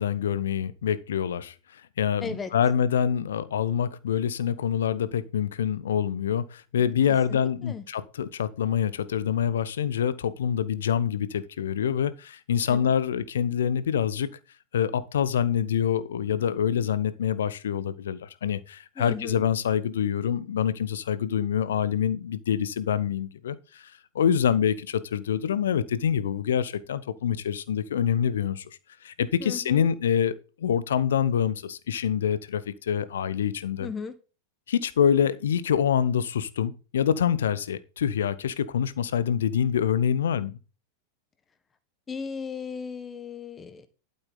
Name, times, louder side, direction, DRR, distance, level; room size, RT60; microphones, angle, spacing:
voice 1, 0.0-14.3 14.7-28.7 29.0-33.9 34.7-40.6, left 8 dB, 65° left, 0.8 m, -26 dB
voice 2, 6.8-7.8 12.7-12.9 19.0-19.4 29.4-29.9 33.8-34.1 42.1-43.9, left 5 dB, 20° left, 1.4 m, -36 dB
12.0 x 8.1 x 3.9 m
figure-of-eight pair, 90°, 0 cm